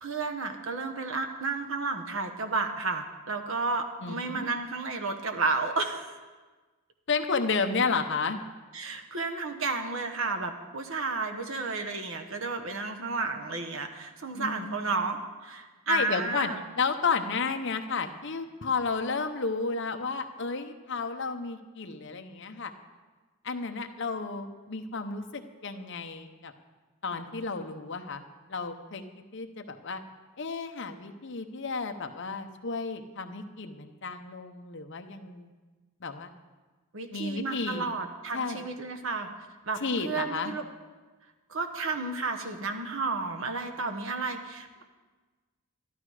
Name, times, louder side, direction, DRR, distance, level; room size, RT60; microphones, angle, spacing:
voice 1, 0.0-6.2 8.7-16.6 36.9-39.3 39.7-40.6 41.5-44.8, right 3 dB, 65° right, 5 dB, 1.1 m, -32 dB
voice 2, 4.0-4.5 7.1-8.4 14.3-14.9 15.9-22.7 23.4-26.5 27.0-29.0 29.3-30.0 30.4-35.5 36.0-36.3 37.1-37.9 38.3-38.6 39.8-40.5, left 4 dB, 55° left, 6 dB, 0.8 m, -32 dB
12.5 x 12.0 x 4.9 m, 1.3 s
head